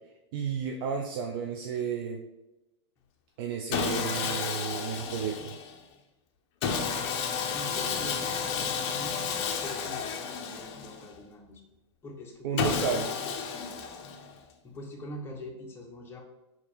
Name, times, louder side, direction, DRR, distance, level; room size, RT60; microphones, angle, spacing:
voice 1, 0.3-2.2 3.4-5.5 12.4-13.1, right 6 dB, 50° right, 2 dB, 0.5 m, -32 dB
Sawing, 3.7-5.8 6.6-11.1 12.6-14.4, left 6 dB, 40° left, 0.6 m, -32 dB
voice 2, 7.4-11.6 12.0-13.7 14.6-16.2, left 1 dB, 15° left, -1 dB, 0.9 m, -44 dB
4.1 x 2.9 x 4.2 m, 0.98 s
hypercardioid pair, 115°, 15 cm